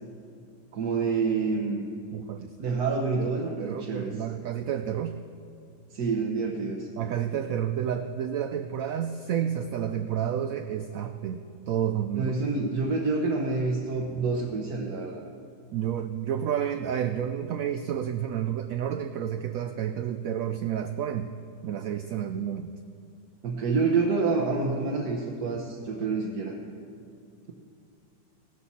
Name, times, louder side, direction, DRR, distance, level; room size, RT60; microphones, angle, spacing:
voice 1, 0.7-1.8 2.6-4.1 5.9-6.9 12.1-15.2 23.4-26.6 27.5-27.6, right 4 dB, 60° right, 0 dB, 1.3 m, -27 dB
voice 2, 2.1-2.5 3.1-3.3 3.6-5.2 7.0-11.4 11.7-12.3 15.7-21.3 21.6-22.7, right 9 dB, 85° right, 8 dB, 0.7 m, -30 dB
16.5 x 13.0 x 4.2 m, 2.5 s
omnidirectional pair, 2.0 m